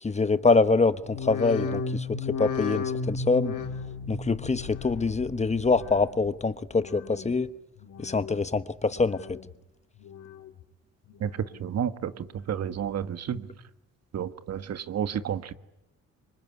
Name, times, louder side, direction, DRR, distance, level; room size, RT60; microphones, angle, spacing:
voice 1, 0.0-3.6 4.1-7.5 8.0-9.4, left 3 dB, 20° left, 1.1 m, -25 dB
sound 1, 1.0-6.4 6.7-7.3 7.8-8.4 8.9-9.5 10.0-10.6 11.1-11.7 12.2-12.3, left 5 dB, 85° left, 3.0 m, -35 dB
voice 2, 11.6-13.5 14.1-15.5, right 9 dB, 55° right, 1.5 m, -31 dB
26.0 x 23.5 x 9.7 m
cardioid pair, 90°, 30 cm